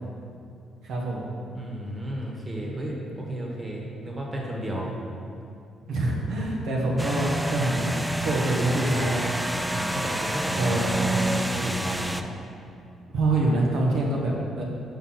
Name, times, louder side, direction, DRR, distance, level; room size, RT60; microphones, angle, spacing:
voice 1, 0.8-1.2 5.9-8.0 8.2-9.2 10.6-11.0 13.1-14.6, right 2 dB, 75° right, -3 dB, 1.0 m, -25 dB
voice 2, 1.5-4.9 9.7-12.2, right 1 dB, 25° right, -2 dB, 1.4 m, -33 dB
sound 1, 7.0-12.2, right 1 dB, 5° right, 0.3 m, -28 dB
5.8 x 4.4 x 5.7 m, 2.5 s
cardioid pair, 90°, 0 cm